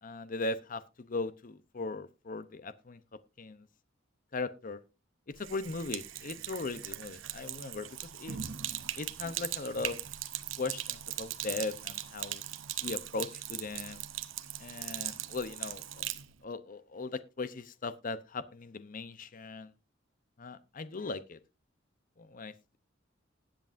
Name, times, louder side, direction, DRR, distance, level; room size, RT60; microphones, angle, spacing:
voice 1, 0.0-3.0 3.4-3.7 4.3-4.8 5.3-8.4 9.0-10.0 10.6-12.4 12.8-14.0 14.6-16.1 16.4-19.7 20.4-21.4 22.2-22.5, left 3 dB, 45° left, 14 dB, 0.7 m, -38 dB
Sink (filling or washing), 5.3-16.3, right 12 dB, 80° right, 0.9 m, -39 dB
20.0 x 8.0 x 2.6 m, 0.27 s
head